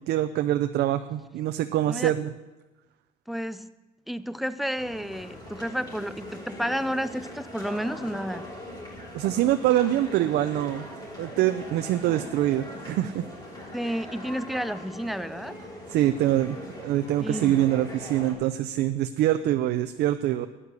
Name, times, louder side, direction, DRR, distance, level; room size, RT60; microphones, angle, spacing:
voice 1, 0.1-2.3 9.1-10.9 11.2-13.2 15.9-16.6 16.8-20.5, right 13 dB, 75° right, 9 dB, 0.6 m, -24 dB
voice 2, 3.3-3.7 4.1-8.5 13.7-15.6 17.2-17.6, equal, ahead, 14 dB, 0.5 m, -31 dB
sound 1, 4.8-18.3, equal, 25° left, 4.7 m, -41 dB
12.5 x 10.0 x 6.6 m, 1.1 s
cardioid pair, 110°, 17 cm